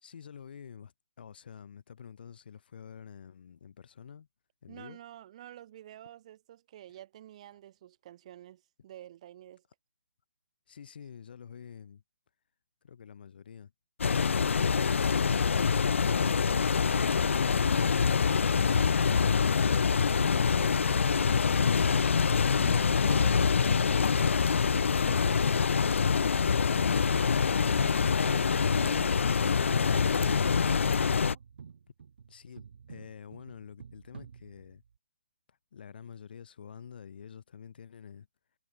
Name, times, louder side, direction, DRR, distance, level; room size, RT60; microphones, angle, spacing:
voice 1, 0.0-4.3 4.6-5.0 10.7-12.0 12.8-13.7 32.3-34.8 35.5-38.3, left 7 dB, 50° left, 2.6 m, -48 dB
voice 2, 4.7-9.6 19.5-21.5 22.5-26.4 26.7-27.4 27.8-31.4, right 12 dB, 30° right, 1.8 m, -50 dB
sound 1, 14.0-31.3, left 6 dB, 80° left, 0.5 m, -25 dB
sound 2, 31.2-35.0, right 6 dB, 55° right, 1.4 m, -51 dB
hypercardioid pair, 170°, 7 cm